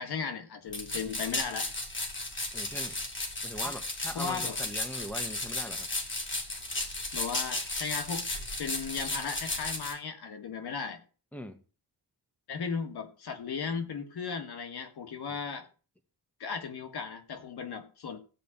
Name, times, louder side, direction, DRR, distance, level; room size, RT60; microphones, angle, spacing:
voice 1, 0.0-1.7 3.6-3.8 4.1-4.6 7.1-8.3 8.6-11.0 12.5-15.7 16.4-18.2, left 5 dB, 75° left, 1.9 m, -36 dB
sound 1, 0.7-9.9, left 2 dB, 30° left, 3.1 m, -34 dB
voice 2, 2.5-3.0 3.4-5.9 11.3-11.6 15.3-15.4, equal, 5° left, 1.5 m, -41 dB
15.0 x 5.1 x 8.8 m
wide cardioid pair, 130°, 39 cm